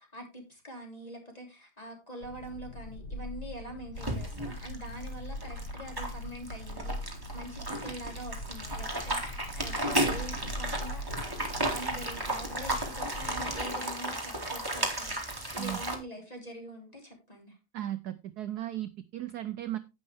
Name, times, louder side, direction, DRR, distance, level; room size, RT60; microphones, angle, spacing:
voice 1, 0.0-7.1 7.3-11.1 11.4-17.6, right 1 dB, 20° left, 3.2 m, -44 dB
sound 1, 2.2-13.5, equal, 40° left, 1.5 m, -41 dB
sound 2, 4.0-16.0, right 1 dB, 10° right, 2.3 m, -34 dB
voice 2, 17.7-19.8, right 13 dB, 65° right, 1.0 m, -36 dB
11.0 x 9.1 x 3.4 m
omnidirectional pair, 2.2 m